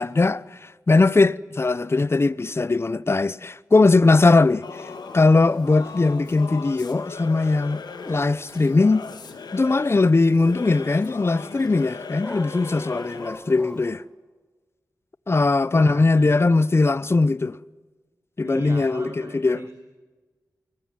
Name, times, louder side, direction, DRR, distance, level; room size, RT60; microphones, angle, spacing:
voice 1, 0.0-4.9 5.1-9.0 9.5-14.0 15.3-17.6 18.4-19.7, left 3 dB, 35° left, 0.7 m, -20 dB
Singing / Musical instrument, 4.6-13.5, left 5 dB, 90° left, 1.8 m, -39 dB
Dog, 4.8-13.9, left 1 dB, 10° left, 3.7 m, -46 dB
voice 2, 15.7-16.5 18.4-19.8, right 2 dB, 40° right, 3.2 m, -38 dB
22.0 x 20.5 x 9.4 m
cardioid pair, 55°, 7 cm